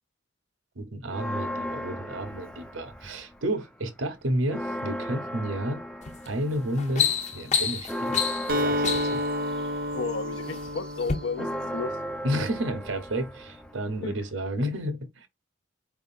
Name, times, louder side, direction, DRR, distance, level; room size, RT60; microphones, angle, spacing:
voice 1, 0.8-5.8 6.3-7.1 7.3-8.2 8.5-9.2 12.2-15.3, right 1 dB, 85° right, 0.9 m, -31 dB
Church bell, 1.1-3.5 3.8-3.9 4.2-14.3, equal, 5° left, 0.4 m, -37 dB
sound 1, 6.0-6.3 6.6-9.3 10.1-10.6 11.0-11.2, left 7 dB, 35° left, 0.7 m, -28 dB
Acoustic guitar, 8.5-12.3, left 1 dB, 45° right, 0.5 m, -30 dB
voice 2, 9.9-11.9 14.0-14.2, left 4 dB, 70° left, 0.4 m, -33 dB
4.5 x 3.6 x 2.5 m
head